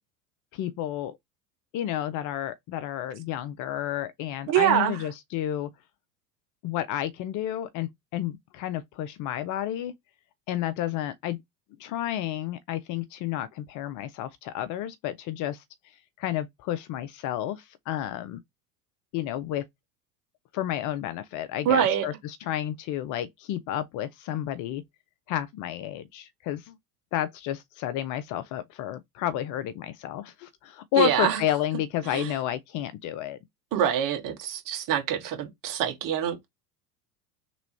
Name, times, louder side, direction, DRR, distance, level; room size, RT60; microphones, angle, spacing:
voice 1, 0.5-1.2 1.7-5.7 6.6-9.9 10.5-11.4 11.8-15.6 16.2-18.4 19.1-19.7 20.5-24.8 25.3-26.8 27.1-33.4, left 12 dB, 40° left, 0.6 m, -31 dB
voice 2, 4.5-5.0 21.6-22.1 31.0-31.4 32.1-32.3 33.7-36.4, right 10 dB, 45° right, 1.7 m, -25 dB
3.4 x 3.1 x 4.2 m
hypercardioid pair, 90°, 48 cm